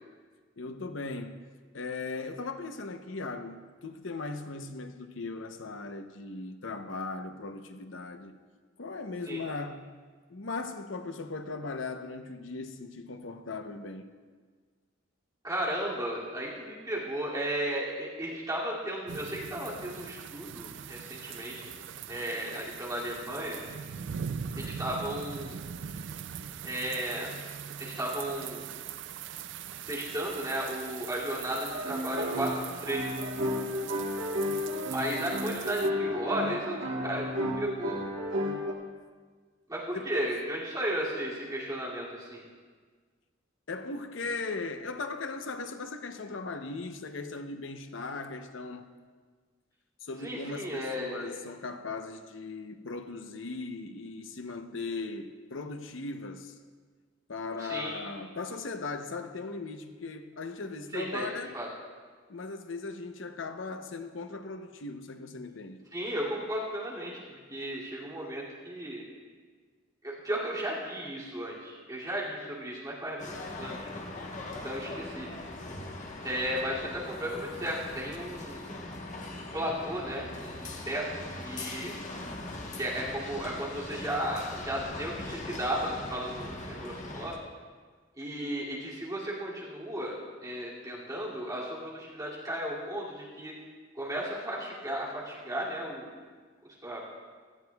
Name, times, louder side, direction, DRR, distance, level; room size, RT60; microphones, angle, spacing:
voice 1, 0.6-1.5 1.7-8.3 8.8-9.9 10.3-14.1 39.9-40.1 43.7-48.9 50.0-56.6 57.3-61.6 62.3-65.8, left 3 dB, 80° left, 0.8 m, -38 dB
voice 2, 15.4-21.7 22.1-23.6 24.6-25.6 26.6-27.3 27.8-28.7 29.9-32.5 32.8-33.1 34.9-38.0 39.7-42.4 50.2-51.4 57.6-58.0 60.9-61.3 61.5-61.7 65.9-69.0 70.0-73.8 74.5-75.3 76.2-78.7 79.5-81.9 82.8-87.4 88.2-90.2 90.4-93.6 93.9-96.2 96.8-97.0, right 1 dB, 20° right, 2.5 m, -34 dB
sound 1, 19.1-35.9, right 7 dB, 65° right, 0.4 m, -41 dB
sound 2, 31.6-38.7, equal, 85° right, 1.4 m, -32 dB
federico cortesi, 73.2-87.4, left 2 dB, 40° left, 1.2 m, -41 dB
17.0 x 12.5 x 2.3 m
head